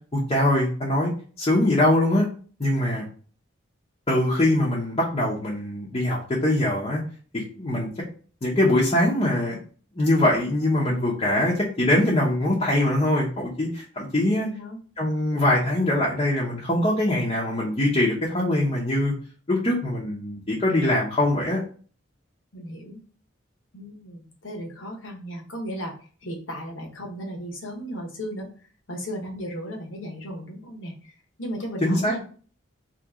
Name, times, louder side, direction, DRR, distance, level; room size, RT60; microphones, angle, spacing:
voice 1, 0.1-1.1 1.4-2.3 2.6-3.0 4.1-7.0 7.3-7.9 8.4-9.6 9.9-14.5 15.0-19.1 19.5-21.6 31.8-32.2, left 1 dB, 30° left, -5 dB, 0.8 m, -22 dB
voice 2, 14.3-14.8 22.5-23.0 23.7-25.9 26.2-28.5 28.9-31.1 31.4-32.2, equal, 80° left, 0 dB, 1.1 m, -35 dB
2.9 x 2.9 x 3.6 m, 0.42 s
head